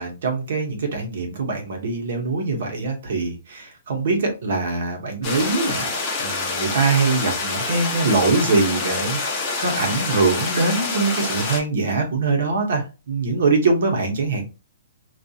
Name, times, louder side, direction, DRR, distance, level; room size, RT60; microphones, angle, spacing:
voice 1, 0.0-5.9 6.2-14.5, right 3 dB, 60° right, 0.9 m, -23 dB
sound 1, 5.2-11.6, left 3 dB, 20° left, 0.6 m, -26 dB
2.7 x 2.3 x 2.3 m
hypercardioid pair, 170°, 0 cm